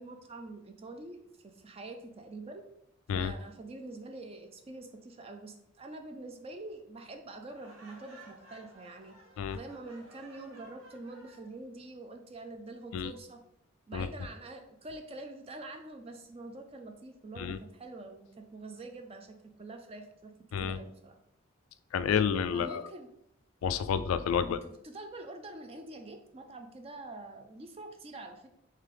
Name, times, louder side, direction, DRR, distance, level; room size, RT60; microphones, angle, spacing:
voice 1, 0.0-2.6 3.1-9.2 9.5-13.4 13.9-20.3 20.6-21.2 22.5-23.1 24.4-28.5, right 2 dB, 30° right, 5 dB, 0.4 m, -45 dB
Laughter, 7.5-11.5, right 1 dB, 75° right, 1.0 m, -55 dB
voice 2, 21.9-22.8 23.6-24.6, left 7 dB, 80° left, 13 dB, 0.3 m, -30 dB
3.3 x 3.3 x 3.7 m, 0.79 s
head